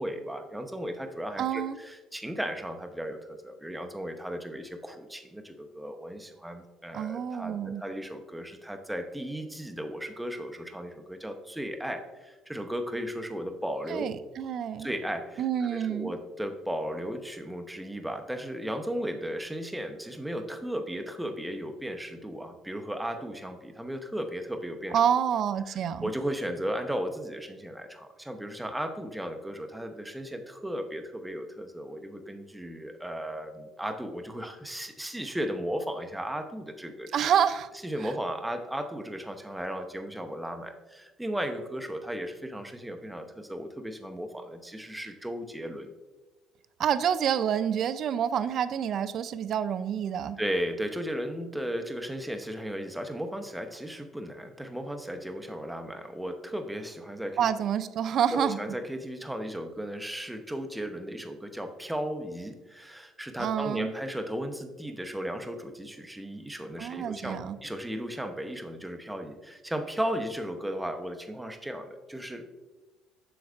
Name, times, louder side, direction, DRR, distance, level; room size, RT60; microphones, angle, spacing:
voice 1, 0.0-14.1 14.8-25.0 25.7-37.1 37.8-45.9 50.4-57.5 58.3-72.5, equal, 5° right, 6 dB, 0.7 m, -35 dB
voice 2, 1.4-1.8 6.9-7.8 13.9-14.9 15.4-16.1 24.9-26.0 37.1-37.7 46.8-50.4 57.4-58.6 63.4-63.9 66.8-67.6, right 9 dB, 55° right, 13 dB, 0.3 m, -28 dB
7.8 x 6.2 x 2.4 m, 1.2 s
cardioid pair, 110°, 0 cm